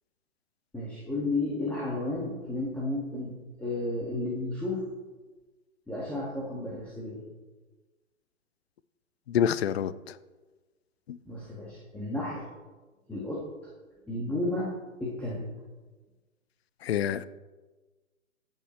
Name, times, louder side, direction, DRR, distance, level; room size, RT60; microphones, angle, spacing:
voice 1, 0.7-3.3 3.6-4.9 5.9-7.2 11.3-12.5 13.1-13.5 14.1-14.7 15.0-15.5, left 2 dB, 5° left, -6 dB, 1.9 m, -32 dB
voice 2, 9.3-10.2 11.1-11.2 16.8-17.2, left 9 dB, 50° left, 16 dB, 0.7 m, -27 dB
23.5 x 8.9 x 3.3 m, 1.3 s
figure-of-eight pair, 130°, 41 cm